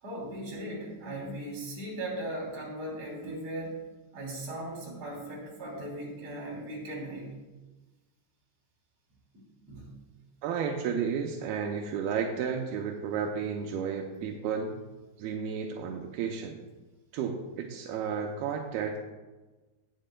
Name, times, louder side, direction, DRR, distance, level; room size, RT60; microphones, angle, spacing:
voice 1, 0.0-3.8 4.1-7.4 9.3-9.9, right 1 dB, 40° right, -3 dB, 3.7 m, -38 dB
voice 2, 10.4-14.8 15.2-16.6 17.1-19.0, right 6 dB, 80° right, 2 dB, 2.2 m, -32 dB
18.0 x 7.5 x 2.2 m, 1.2 s
omnidirectional pair, 5.1 m